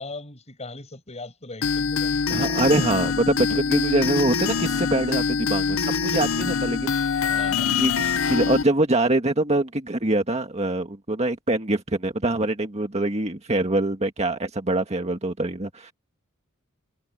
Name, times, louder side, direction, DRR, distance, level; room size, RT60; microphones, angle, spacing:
voice 1, 0.0-2.6 7.2-7.7, left 2 dB, 30° left, 7.6 m, -39 dB
sound 1, 1.6-8.6, left 5 dB, 70° left, 0.8 m, -24 dB
voice 2, 2.3-7.9 8.3-15.9, right 2 dB, 30° right, 1.8 m, -24 dB
head